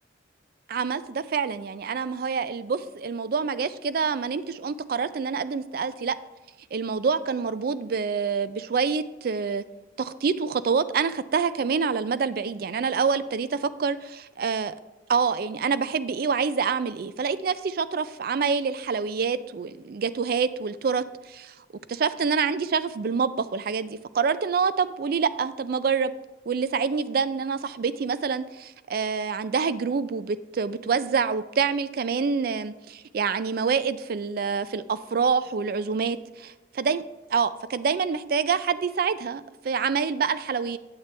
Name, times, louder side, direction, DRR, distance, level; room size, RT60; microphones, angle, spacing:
voice 1, 0.7-6.2 6.7-9.6 10.0-14.8 15.1-21.5 21.9-26.1 26.5-36.2 36.7-37.0 37.3-40.8, right 5 dB, 55° right, 14 dB, 0.4 m, -26 dB
8.8 x 8.1 x 3.2 m, 1.1 s
head